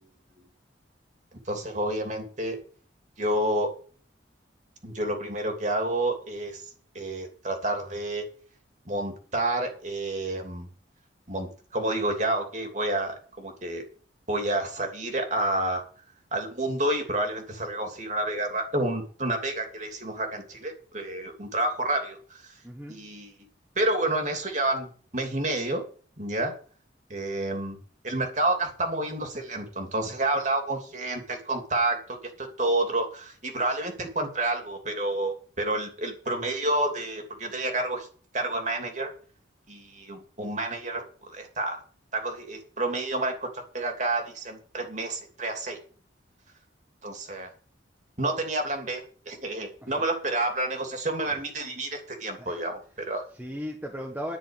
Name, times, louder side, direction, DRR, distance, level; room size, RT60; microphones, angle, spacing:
voice 1, 1.5-2.6 3.2-3.7 4.8-6.6 6.9-8.2 8.8-10.7 11.3-13.8 14.3-15.8 16.3-22.5 22.9-23.3 23.7-25.8 26.2-26.5 27.1-27.8 28.0-38.1 38.3-39.1 39.7-41.8 42.1-45.8 47.0-47.5 48.2-53.2, right 2 dB, 40° right, 4 dB, 3.0 m, -29 dB
voice 2, 22.6-23.1 49.8-50.0 51.3-51.4 52.4-52.7 53.3-54.4, equal, 10° right, 0 dB, 1.5 m, -37 dB
11.0 x 6.7 x 9.1 m, 0.42 s
head